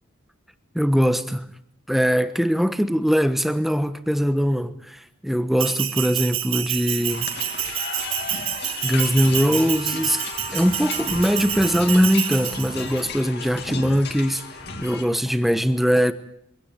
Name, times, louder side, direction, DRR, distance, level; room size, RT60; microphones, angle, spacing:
voice 1, 0.7-1.4 1.9-7.3 8.8-10.2 10.5-14.4 14.8-16.1, equal, ahead, 11 dB, 1.1 m, -21 dB
Bell, 5.6-13.0, right 12 dB, 70° right, 1.8 m, -28 dB
sound 1, 7.1-15.0, left 4 dB, 50° left, 2.8 m, -34 dB
24.5 x 17.0 x 9.3 m, 0.71 s
head